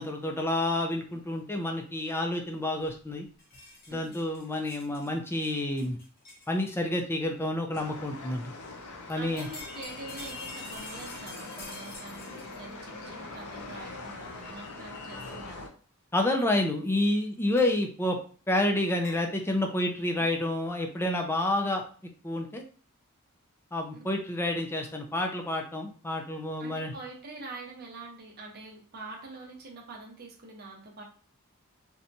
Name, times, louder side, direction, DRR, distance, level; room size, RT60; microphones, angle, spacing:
voice 1, 0.0-3.3 3.9-6.0 6.5-8.5 9.1-9.5 16.1-18.2 18.5-21.8 22.2-22.6 23.7-26.9, left 1 dB, 10° left, 3 dB, 0.4 m, -29 dB
sound 1, 3.4-7.0 7.8-7.9 9.1-12.7 13.6-13.7 15.2-15.4 17.6-17.7 19.0-19.2, left 2 dB, 45° left, 0.9 m, -47 dB
voice 2, 3.9-4.2 9.2-15.7 26.6-31.0, right 3 dB, 45° right, -1 dB, 0.7 m, -45 dB
sound 2, 7.7-15.7, left 3 dB, 80° left, 0.5 m, -42 dB
2.8 x 2.2 x 2.6 m, 0.41 s
head